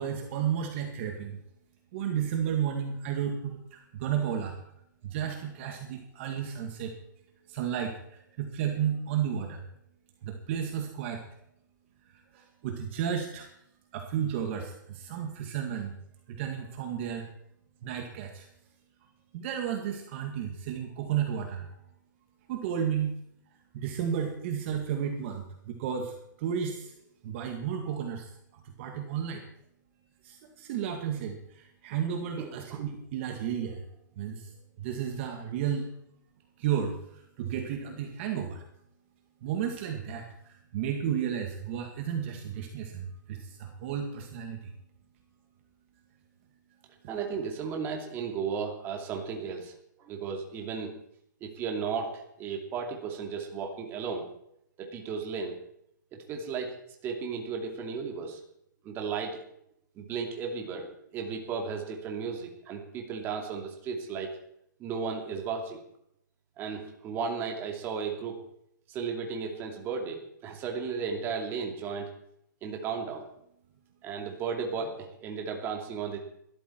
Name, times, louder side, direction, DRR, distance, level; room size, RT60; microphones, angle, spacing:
voice 1, 0.0-1.4 1.9-4.6 5.0-6.9 7.5-9.6 10.2-11.2 12.1-13.5 13.9-15.9 16.3-17.3 17.8-18.5 19.3-21.7 22.5-23.1 23.7-26.9 27.2-29.4 30.2-33.8 34.2-34.5 34.8-35.9 36.6-38.6 39.4-44.7, right 8 dB, 35° right, 3 dB, 2.0 m, -33 dB
voice 2, 32.4-32.8 47.1-49.7 50.0-50.9 51.4-54.3 54.8-55.6 56.1-56.8 57.0-58.4 58.8-59.4 60.0-64.4 64.8-65.8 66.6-68.4 68.9-72.1 72.6-73.2 74.0-76.2, right 5 dB, 20° right, 2 dB, 2.6 m, -34 dB
19.5 x 13.5 x 4.6 m, 0.75 s
hypercardioid pair, 160°, 11 cm